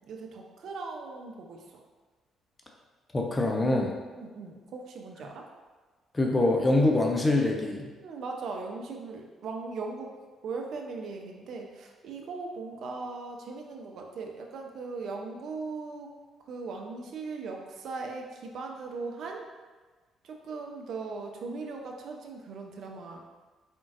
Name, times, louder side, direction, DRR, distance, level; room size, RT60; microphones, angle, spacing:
voice 1, 0.1-1.8 4.1-5.5 8.0-10.1 10.4-16.1 16.5-19.4 20.2-23.2, right 4 dB, 60° right, 2 dB, 0.6 m, -39 dB
voice 2, 3.1-4.0 6.1-7.8, left 2 dB, 25° left, 1 dB, 0.5 m, -24 dB
4.4 x 3.7 x 2.5 m, 1.3 s
hypercardioid pair, 45°, 0 cm